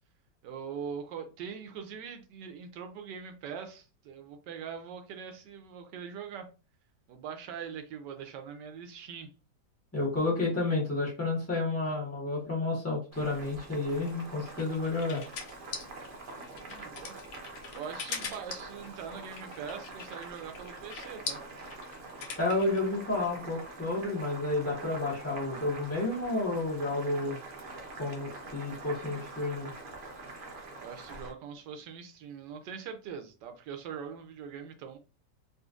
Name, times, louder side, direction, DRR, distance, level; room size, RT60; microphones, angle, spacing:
voice 1, 0.4-6.5 7.1-9.3 16.5-21.4 30.8-35.0, right 7 dB, 80° right, 1.2 m, -42 dB
voice 2, 9.9-15.2 22.4-27.4 28.0-29.7, left 2 dB, 15° left, 0.6 m, -31 dB
Boiling, 13.1-31.3, right 2 dB, 45° right, 0.7 m, -45 dB
sound 1, 14.1-22.8, left 5 dB, 85° left, 1.4 m, -41 dB
4.0 x 2.4 x 2.4 m
omnidirectional pair, 1.9 m